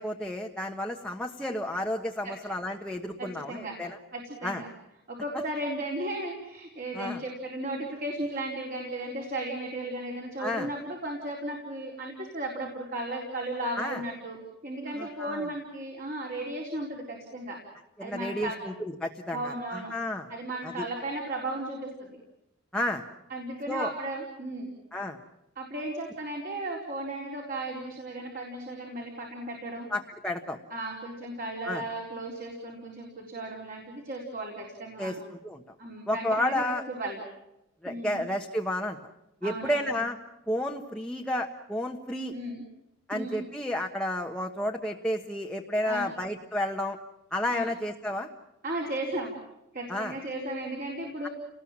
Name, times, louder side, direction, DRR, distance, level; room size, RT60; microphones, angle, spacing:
voice 1, 0.0-4.0 4.4-4.6 6.9-7.2 10.4-10.7 13.7-14.0 15.0-15.4 18.0-20.3 20.6-20.8 22.7-23.0 23.7-23.9 24.9-25.2 29.9-30.6 31.6-31.8 35.0-35.6 36.1-36.8 37.8-39.0 39.4-40.2 40.5-42.3 43.1-47.0 47.3-48.3 49.9-50.2 51.2-51.3, left 1 dB, 5° left, 1 dB, 1.2 m, -31 dB
voice 2, 3.2-3.8 4.1-4.7 5.1-14.4 14.6-17.6 18.0-18.6 19.3-19.9 20.3-22.2 23.3-24.7 25.6-29.9 30.7-35.2 35.8-37.2 37.9-38.2 39.4-39.9 42.3-42.6 43.1-43.4 45.8-46.1 47.5-47.7 48.6-49.3 49.7-51.3, right 1 dB, 40° right, 0 dB, 4.3 m, -35 dB
30.0 x 20.0 x 7.4 m, 0.90 s
head